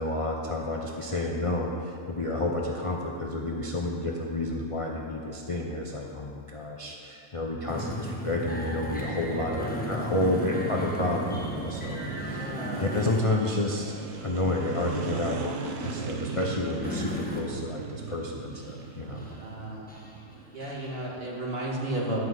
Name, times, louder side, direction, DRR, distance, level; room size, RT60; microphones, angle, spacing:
voice 1, 0.0-19.3, left 2 dB, 30° left, -1 dB, 0.6 m, -30 dB
sound 1, 7.7-13.7 14.1-14.3 14.7-14.9 15.8-17.6 18.1-18.2 18.5-18.8 19.2-19.6 19.9-21.0, equal, 5° left, 1.2 m, -36 dB
sound 2, 9.1-20.4, right 5 dB, 70° right, 1.2 m, -38 dB
voice 2, 12.3-12.9 19.0-19.9 20.5-22.2, right 1 dB, 45° right, -5 dB, 2.2 m, -33 dB
11.5 x 5.5 x 8.0 m, 2.6 s
omnidirectional pair, 1.4 m